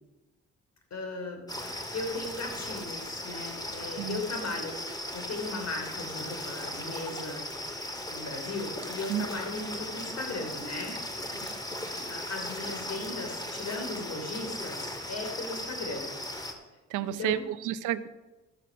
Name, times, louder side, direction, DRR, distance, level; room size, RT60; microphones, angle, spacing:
voice 1, 0.9-1.4 1.9-4.8 5.1-7.4 8.1-11.0 12.1-16.1 17.0-17.4, left 3 dB, 55° left, 3 dB, 3.2 m, -37 dB
sound 1, 1.5-16.5, left 1 dB, 15° left, 1.9 m, -37 dB
voice 2, 16.9-18.1, right 12 dB, 80° right, 14 dB, 0.6 m, -31 dB
12.5 x 7.3 x 5.9 m, 1.1 s
supercardioid pair, 55°, 30 cm